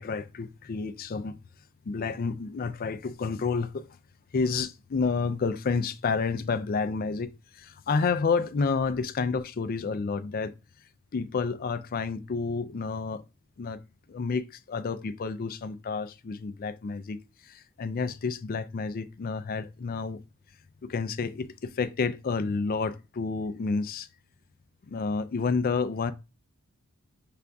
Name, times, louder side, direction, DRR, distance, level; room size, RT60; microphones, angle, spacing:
voice 1, 0.0-1.4 1.9-3.9 4.3-10.5 11.1-13.2 13.6-13.8 14.1-20.2 20.8-24.1 24.8-26.1, left 4 dB, 40° left, 0.4 m, -30 dB
5.7 x 2.5 x 3.4 m
head